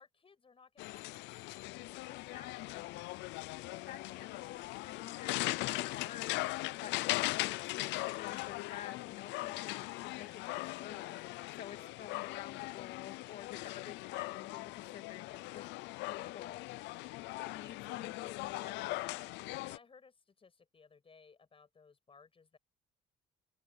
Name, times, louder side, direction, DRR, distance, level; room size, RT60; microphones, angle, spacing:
voice 1, 0.0-2.6 2.8-3.1 11.7-11.9 15.4-15.7 19.4-22.6, left 5 dB, 30° left, 6.6 m, -62 dB
sound 1, 0.8-19.8, left 20 dB, 85° left, 0.6 m, -39 dB
voice 2, 2.0-3.0 3.7-15.6 16.1-16.6 17.4-19.2, left 10 dB, 60° left, 2.2 m, -50 dB
open air
cardioid pair, 90°, 18 cm